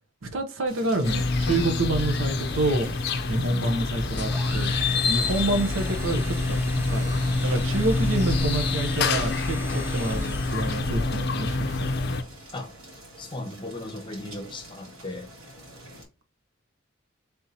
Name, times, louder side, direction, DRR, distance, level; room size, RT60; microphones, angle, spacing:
voice 1, 0.3-2.9 3.3-4.7 5.1-7.1 7.4-12.0, right 2 dB, 70° right, 0.8 m, -28 dB
sound 1, 0.7-16.0, right 1 dB, 90° right, 2.1 m, -46 dB
sound 2, 1.0-12.2, left 3 dB, 50° left, 0.5 m, -26 dB
sound 3, 4.3-11.0, equal, 10° right, 0.8 m, -41 dB
voice 2, 13.2-15.3, left 2 dB, 25° left, 0.9 m, -37 dB
3.5 x 2.9 x 4.0 m
head